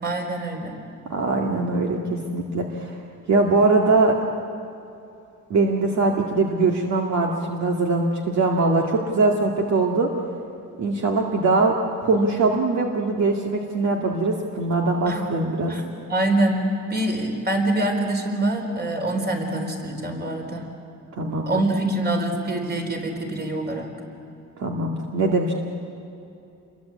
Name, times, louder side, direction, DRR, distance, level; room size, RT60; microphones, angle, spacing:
voice 1, 0.0-0.8 15.1-15.3 15.7-20.6 21.5-23.9, right 1 dB, 30° right, 3 dB, 4.5 m, -25 dB
voice 2, 1.1-3.0 3.3-4.2 5.5-10.1 10.8-11.7 12.0-15.7 21.2-21.6 24.6-25.5, right 3 dB, 60° right, 0 dB, 2.2 m, -22 dB
29.0 x 22.5 x 8.5 m, 2.7 s
cardioid pair, 145°, 32 cm